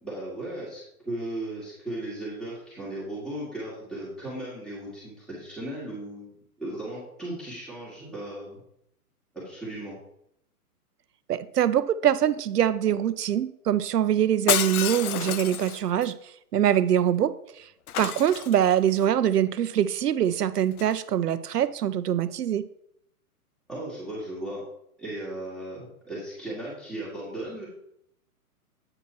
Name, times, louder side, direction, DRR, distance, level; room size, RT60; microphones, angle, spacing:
voice 1, 0.0-6.3 6.6-8.6 9.3-10.0 21.5-21.7 23.7-24.6 25.0-27.7, right 1 dB, ahead, -7 dB, 2.4 m, -36 dB
voice 2, 11.3-16.1 16.5-17.6 18.0-22.6, right 10 dB, 85° right, 14 dB, 0.7 m, -24 dB
Shatter, 14.5-16.1 17.9-19.0 20.7-21.0, left 11 dB, 70° left, 0.6 m, -29 dB
8.6 x 4.6 x 4.5 m, 0.74 s
hypercardioid pair, 135°, 46 cm